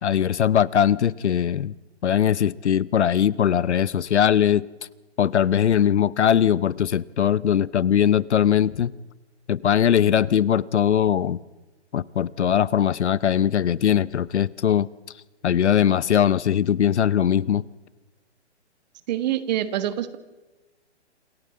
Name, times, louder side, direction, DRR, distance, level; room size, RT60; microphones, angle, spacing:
voice 1, 0.0-1.7 2.0-4.7 5.2-8.9 9.5-11.4 11.9-14.9 15.4-17.6, left 9 dB, 75° left, 21 dB, 0.7 m, -20 dB
voice 2, 19.1-20.2, right 12 dB, 40° right, 11 dB, 1.4 m, -25 dB
27.5 x 13.0 x 7.6 m, 1.2 s
hypercardioid pair, 135°, 35 cm